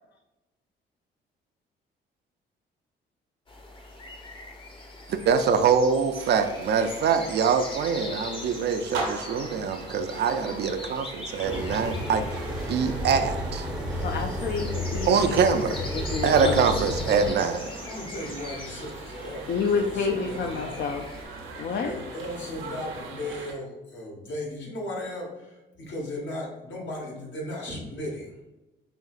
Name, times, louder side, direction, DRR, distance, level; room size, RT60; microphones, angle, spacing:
sound 1, 3.5-21.2, left 2 dB, 25° left, 0.8 m, -41 dB
voice 1, 5.1-12.3 12.7-13.6 15.1-15.7 16.2-17.6, right 6 dB, 60° right, 8 dB, 0.4 m, -24 dB
sound 2, 6.2-23.5, right 3 dB, 85° right, 1.0 m, -41 dB
sound 3, 11.4-17.3, equal, 5° right, 0.6 m, -32 dB
voice 2, 14.0-15.6 15.9-16.8 19.5-21.0 21.6-22.0, left 5 dB, 50° left, 3 dB, 0.4 m, -29 dB
voice 3, 17.6-20.8 21.8-28.3, left 1 dB, 70° left, -2 dB, 1.4 m, -36 dB
5.2 x 2.7 x 2.4 m, 1.0 s
cardioid pair, 90°, 20 cm